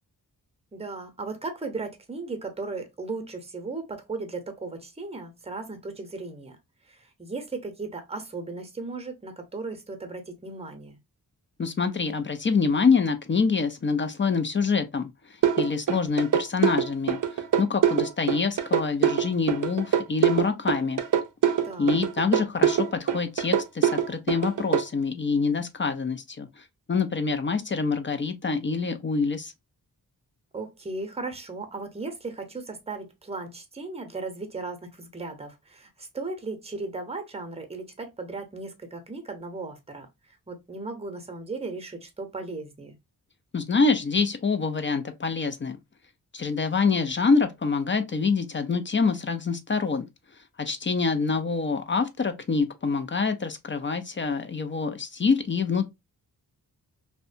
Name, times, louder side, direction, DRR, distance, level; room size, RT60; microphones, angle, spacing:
voice 1, 0.7-6.6 6.9-11.0 21.6-22.0 30.5-40.1 40.5-43.0, right 3 dB, 15° right, 0.7 m, -36 dB
voice 2, 11.6-21.0 21.8-29.5 43.5-45.8 46.3-50.1 50.6-55.9, left 4 dB, 30° left, 0.4 m, -26 dB
sound 1, 15.4-24.8, right 9 dB, 55° right, 0.5 m, -23 dB
2.6 x 2.2 x 2.5 m
cardioid pair, 60°, 39 cm